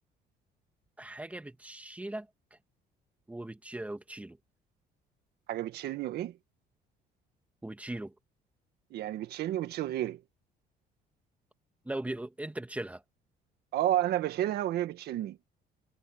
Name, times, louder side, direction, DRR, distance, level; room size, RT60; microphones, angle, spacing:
voice 1, 1.0-2.6 3.3-4.4 7.6-8.1 11.8-13.0, right 1 dB, 10° right, 2.3 m, -39 dB
voice 2, 5.5-6.4 8.9-10.2 13.7-15.4, right 13 dB, 70° right, 1.8 m, -31 dB
cardioid pair, 110°, 17 cm